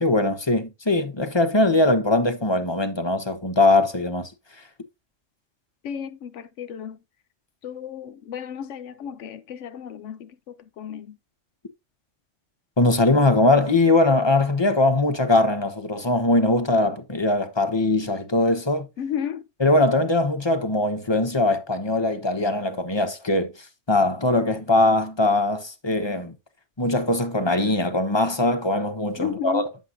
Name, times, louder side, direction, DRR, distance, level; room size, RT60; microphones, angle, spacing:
voice 1, 0.0-4.3 12.8-18.9 19.6-23.5 23.9-26.3 26.8-29.6, left 2 dB, 25° left, 1.2 m, -21 dB
voice 2, 5.8-7.0 7.6-11.2 19.0-19.4 29.2-29.7, left 8 dB, 85° left, 1.0 m, -33 dB
9.4 x 7.9 x 2.7 m
omnidirectional pair, 1.2 m